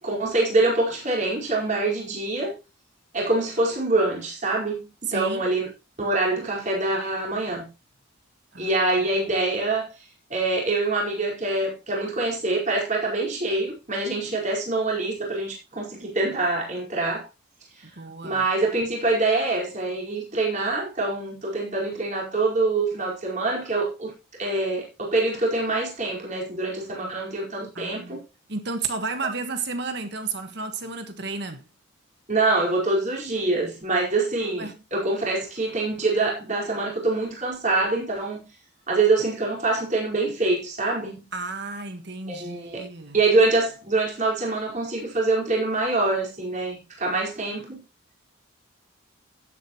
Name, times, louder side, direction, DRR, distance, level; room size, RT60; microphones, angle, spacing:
voice 1, 0.0-2.5 3.1-5.7 6.0-7.7 8.6-10.0 10.3-17.3 18.2-24.1 24.4-28.2 32.3-38.5 38.9-41.2 42.3-42.8 43.1-47.8, right 2 dB, 35° right, 4.9 m, -25 dB
voice 2, 5.1-5.5 8.5-8.8 17.8-18.5 27.7-28.2 28.5-31.6 34.6-34.8 41.3-43.2, right 4 dB, 55° right, 1.5 m, -32 dB
16.5 x 8.4 x 3.1 m
head